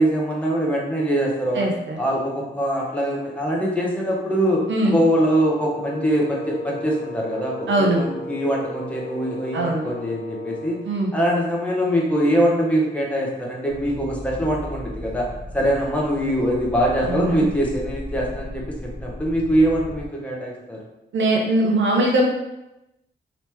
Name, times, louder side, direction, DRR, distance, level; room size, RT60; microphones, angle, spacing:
voice 1, 0.0-1.7 2.0-10.8 11.1-15.3 15.5-20.8, equal, 5° left, -3 dB, 0.7 m, -23 dB
voice 2, 1.5-2.0 4.7-5.0 7.7-8.0 9.5-9.9 10.8-11.1 17.0-17.5 21.1-22.2, right 1 dB, 75° right, -1 dB, 0.8 m, -21 dB
Wind instrument woodwind instrument, 5.1-10.9, left 1 dB, 90° left, 0.4 m, -34 dB
sound 1, 13.7-20.1, equal, 35° right, 0.7 m, -36 dB
3.0 x 2.9 x 3.4 m, 0.93 s
wide cardioid pair, 150°, 19 cm